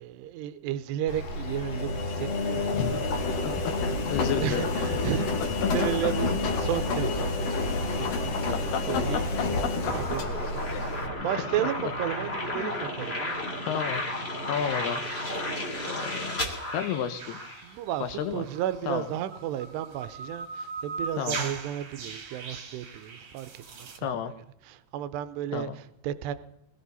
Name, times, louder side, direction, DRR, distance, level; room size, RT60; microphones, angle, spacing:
voice 1, 0.0-3.0 3.5-10.4 10.8-13.4 17.6-18.0 18.3-24.4 24.6-26.3, right 12 dB, 85° right, 2.8 m, -34 dB
Engine, 1.1-11.1, left 3 dB, 55° left, 1.8 m, -29 dB
voice 2, 4.1-4.7 5.2-5.3 5.6-5.7 8.5-9.2 9.6-9.7 10.7-10.8 11.6-11.9 12.6-12.7 13.7-14.0 14.5-15.0 15.9-17.4 18.0-18.4 18.9-19.1 21.2-21.4 24.0-24.3 25.5-25.8, left 8 dB, 75° left, 2.7 m, -31 dB
sound 1, 9.9-17.7, left 1 dB, 20° left, 2.0 m, -33 dB
sound 2, 14.9-24.0, right 4 dB, 50° right, 2.1 m, -41 dB
22.0 x 14.0 x 4.1 m
omnidirectional pair, 4.9 m